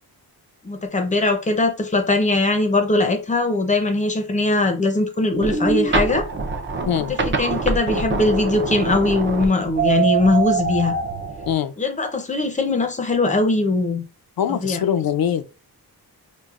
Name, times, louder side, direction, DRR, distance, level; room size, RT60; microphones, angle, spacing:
voice 1, 0.6-6.3 7.4-10.9 11.8-14.0 14.5-14.8, left 2 dB, 20° left, 0.6 m, -20 dB
sound 1, 5.3-11.5, right 4 dB, 30° right, 0.6 m, -24 dB
voice 2, 14.4-15.5, left 9 dB, 65° left, 0.5 m, -22 dB
5.6 x 2.1 x 2.4 m
wide cardioid pair, 170°, 39 cm